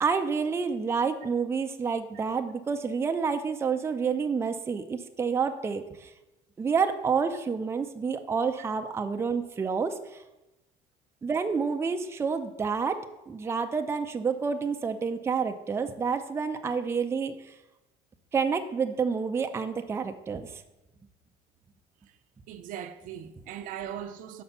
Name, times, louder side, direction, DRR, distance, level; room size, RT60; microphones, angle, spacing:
voice 1, 0.0-6.1 6.6-10.2 11.2-17.5 18.3-20.6, right 5 dB, 15° right, 0.4 m, -29 dB
voice 2, 22.5-24.4, right 9 dB, 65° right, 0.6 m, -39 dB
5.7 x 5.0 x 5.5 m
cardioid pair, 120°, 15 cm